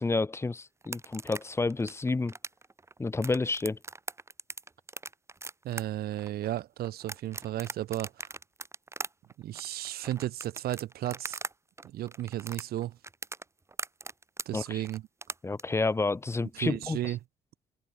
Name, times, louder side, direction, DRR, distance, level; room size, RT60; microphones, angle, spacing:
voice 1, 0.0-2.3 3.0-3.8 14.5-14.8 15.4-17.0, left 3 dB, 15° left, 1.1 m, -29 dB
sound 1, 0.8-11.5 11.8-15.6, right 3 dB, 15° right, 2.5 m, -40 dB
voice 2, 5.6-8.3 9.4-11.4 11.8-13.0 14.5-15.0 16.5-17.2, right 13 dB, 65° right, 1.1 m, -34 dB
cardioid pair, 110°, 17 cm